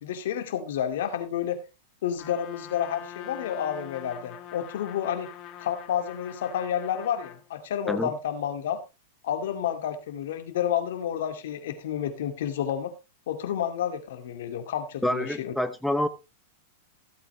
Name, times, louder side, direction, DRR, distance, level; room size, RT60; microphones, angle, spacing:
voice 1, 0.0-1.6 2.0-5.3 5.6-8.8 9.2-12.9 13.3-15.5, left 9 dB, 65° left, 7 dB, 2.3 m, -30 dB
Trumpet, 2.2-7.4, left 11 dB, 40° left, 1.8 m, -43 dB
voice 2, 15.0-16.1, left 1 dB, ahead, 10 dB, 0.9 m, -27 dB
15.5 x 8.3 x 3.2 m, 0.26 s
hypercardioid pair, 105°, 0 cm